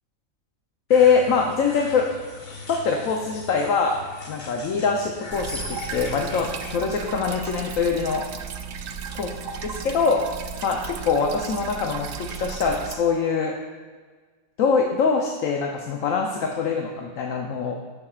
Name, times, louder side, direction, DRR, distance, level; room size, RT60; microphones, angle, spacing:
voice 1, 0.9-2.1 2.7-4.0 4.3-8.2 9.2-9.3 9.6-10.2 10.6-13.5 14.6-17.8, left 5 dB, 80° left, 1 dB, 1.1 m, -23 dB
sound 1, 0.9-6.8, left 3 dB, 40° left, 0.9 m, -39 dB
sound 2, 5.3-13.0, right 6 dB, 80° right, 1.0 m, -35 dB
11.5 x 6.9 x 2.4 m, 1.5 s
omnidirectional pair, 1.4 m